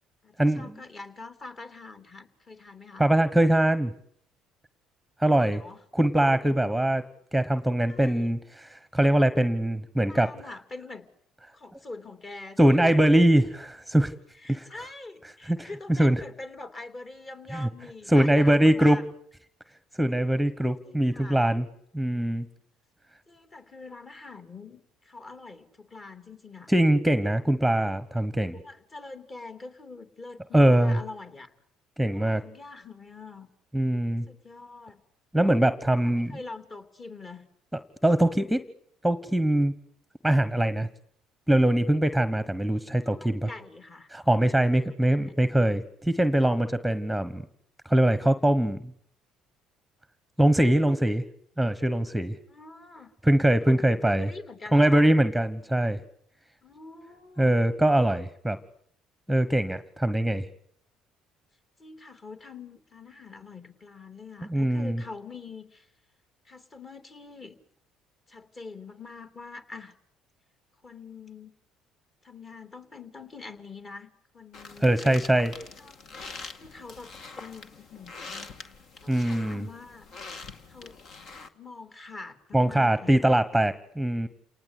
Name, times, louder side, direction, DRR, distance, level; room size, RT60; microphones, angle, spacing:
voice 1, 0.2-3.1 5.2-5.8 7.9-8.3 10.1-11.1 11.5-13.0 14.4-19.0 20.8-21.5 23.3-26.7 28.6-31.5 32.1-33.5 34.3-35.0 35.9-37.5 43.0-44.1 52.5-53.1 53.6-55.1 56.6-57.6 61.8-65.9 66.4-67.6 68.3-69.9 70.8-71.5 72.2-74.1 74.3-74.9 75.8-75.9 76.6-78.5 79.0-80.1 80.7-81.0 81.5-83.2, left 3 dB, 35° left, 9 dB, 3.2 m, -44 dB
voice 2, 3.0-3.9 5.2-5.6 5.9-7.0 7.3-10.3 12.6-14.1 14.5-14.7 15.5-16.2 17.5-17.7 18.1-19.0 20.0-21.7 21.9-22.5 26.7-28.6 30.5-31.0 32.0-32.4 33.7-34.3 35.3-36.3 38.0-38.6 39.0-39.7 40.2-40.9 41.5-43.5 44.1-47.4 47.8-48.8 50.4-51.2 51.6-52.4 53.2-54.3 54.7-56.0 57.4-58.6 59.3-60.5 64.4-65.0 74.8-75.6 79.1-79.7 82.5-84.3, right 1 dB, ahead, 13 dB, 1.2 m, -22 dB
sound 1, 74.5-81.5, left 4 dB, 60° left, 2.1 m, -44 dB
29.0 x 19.0 x 8.5 m, 0.67 s
supercardioid pair, 75°, 0 cm